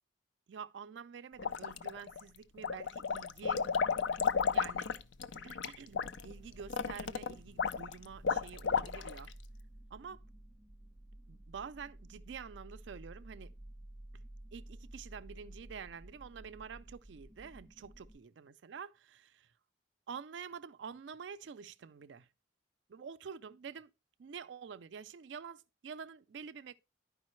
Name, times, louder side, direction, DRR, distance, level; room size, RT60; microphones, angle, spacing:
voice 1, 0.5-3.7 4.5-4.9 5.3-9.3 9.9-10.2 11.3-13.5 14.1-14.2 14.5-19.5 20.1-22.3 22.9-23.9 24.2-26.8, right 6 dB, 75° right, 0.4 m, -48 dB
sound 1, 1.4-2.2 2.6-9.3, left 6 dB, 75° left, 0.5 m, -33 dB
sound 2, 6.0-18.1, right 1 dB, 5° left, 4.2 m, -53 dB
11.5 x 5.0 x 3.1 m
head